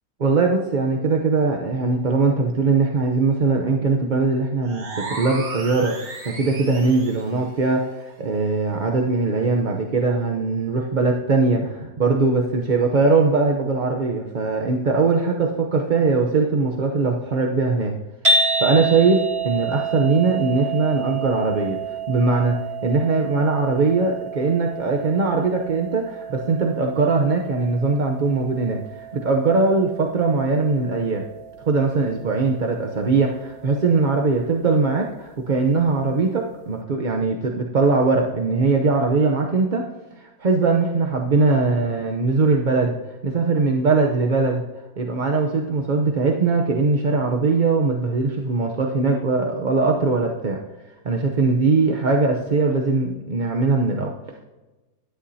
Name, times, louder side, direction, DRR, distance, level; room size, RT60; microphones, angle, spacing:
voice 1, 0.2-17.9 18.6-21.8 22.1-31.2 31.7-39.8 40.2-43.0 43.2-44.7 45.0-50.6 51.0-54.1, right 3 dB, 45° right, 1 dB, 0.6 m, -21 dB
sound 1, 4.6-7.3, right 3 dB, 85° right, 2.5 m, -34 dB
sound 2, 18.2-34.5, right 3 dB, 20° right, 1.2 m, -30 dB
11.5 x 9.9 x 2.8 m, 1.1 s
omnidirectional pair, 1.7 m